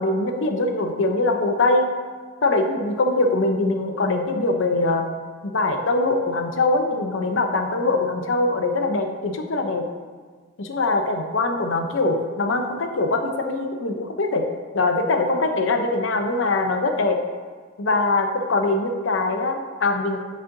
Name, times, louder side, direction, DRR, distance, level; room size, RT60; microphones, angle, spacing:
voice 1, 0.0-1.9 2.4-5.1 5.4-9.8 10.6-14.4 14.7-17.2 17.8-20.2, left 2 dB, 90° left, 4 dB, 0.7 m, -22 dB
11.0 x 4.2 x 2.7 m, 1.5 s
head